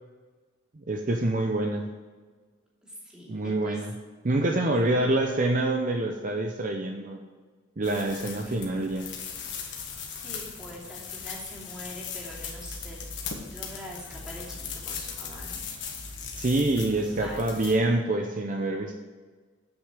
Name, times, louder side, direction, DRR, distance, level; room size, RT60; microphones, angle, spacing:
voice 1, 0.9-1.9 3.3-3.9 4.2-7.2 7.8-9.1 16.4-18.9, right 2 dB, 45° right, 3 dB, 0.7 m, -26 dB
voice 2, 2.8-3.8 4.3-4.7 8.4-8.9 10.1-13.2 13.5-14.6 14.8-15.6 17.0-17.6, equal, 5° right, -6 dB, 2.8 m, -44 dB
sound 1, 7.8-17.8, left 5 dB, 70° left, 1.5 m, -38 dB
8.1 x 6.5 x 7.4 m, 1.4 s
head